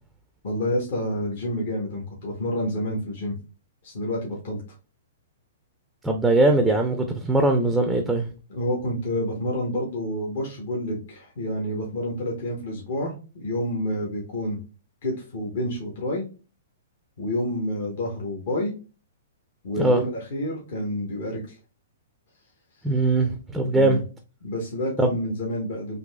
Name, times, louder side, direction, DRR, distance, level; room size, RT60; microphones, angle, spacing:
voice 1, 0.4-3.4 3.8-4.6 8.5-14.6 15.0-16.3 17.2-18.7 19.6-21.4 23.7-24.0 24.4-26.0, left 1 dB, 60° left, 1.0 m, -28 dB
voice 2, 6.0-8.3 19.8-20.0 22.8-24.0 25.0-25.1, right 2 dB, 5° right, 0.4 m, -21 dB
3.9 x 2.6 x 2.2 m
hypercardioid pair, 120°, 0 cm